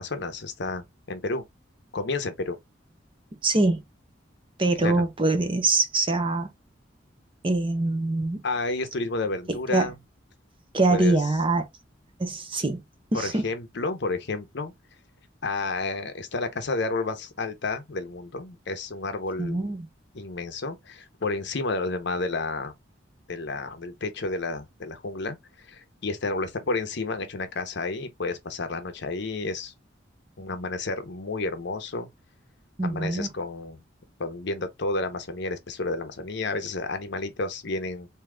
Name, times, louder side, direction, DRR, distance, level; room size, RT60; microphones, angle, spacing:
voice 1, 0.0-1.4 1.9-2.6 4.8-5.0 8.4-9.9 10.9-11.2 13.1-14.7 15.4-19.6 20.1-22.7 23.3-25.4 25.6-29.7 30.4-32.1 32.8-33.8 34.2-38.1, left 3 dB, 65° left, 0.8 m, -31 dB
voice 2, 3.4-3.8 4.6-6.5 7.4-8.4 9.7-9.9 10.7-11.7 12.2-12.8 13.1-13.4 19.4-19.9 32.8-33.3, right 2 dB, 30° right, 0.7 m, -24 dB
3.7 x 2.8 x 3.3 m
head